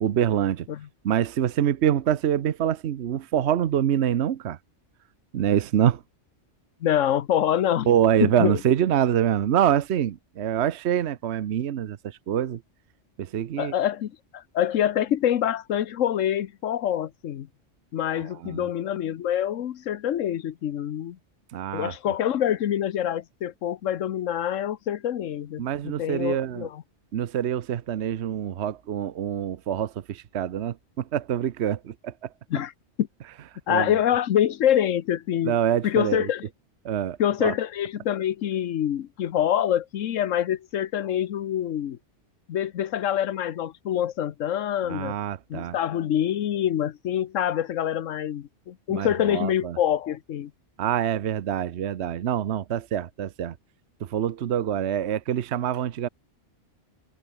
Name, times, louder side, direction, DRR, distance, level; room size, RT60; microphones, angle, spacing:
voice 1, 0.0-0.7 1.0-4.6 5.3-6.0 7.9-12.6 13.2-13.7 18.1-18.7 21.5-21.9 25.6-26.7 27.1-32.1 33.7-33.9 35.4-36.3 36.8-37.5 44.9-45.8 48.9-49.8 50.8-53.5 54.0-56.1, right 10 dB, 65° right, 1.0 m, -25 dB
voice 2, 6.8-7.9 8.2-8.6 13.6-17.5 17.9-21.2 21.7-26.8 32.5-32.7 33.0-33.1 33.7-35.6 35.8-36.5 37.2-42.0 42.5-45.1 45.5-50.5, left 10 dB, 85° left, 1.2 m, -26 dB
omnidirectional pair, 1.3 m